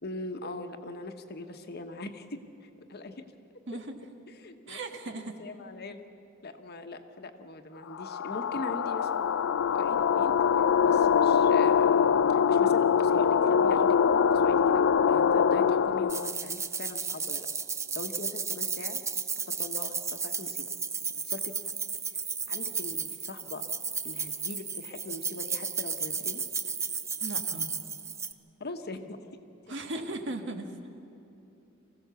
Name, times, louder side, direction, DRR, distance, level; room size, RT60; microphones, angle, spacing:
voice 1, 0.0-3.2 4.3-4.8 5.2-6.0 6.4-9.3 9.7-10.4 10.8-11.9 12.3-14.0 14.3-17.5 17.9-19.0 19.5-20.6 21.2-21.6 22.5-23.6 24.0-26.4 28.6-29.4 29.7-30.1, left 2 dB, 50° left, 7 dB, 1.2 m, -41 dB
voice 2, 4.7-5.4 27.2-27.7 29.7-30.7, right 2 dB, 60° right, 5 dB, 1.6 m, -37 dB
sound 1, 7.9-16.3, left 7 dB, 65° left, 0.4 m, -23 dB
sound 2, 16.1-28.3, right 5 dB, 15° right, 0.4 m, -34 dB
24.5 x 15.5 x 7.0 m, 2.9 s
head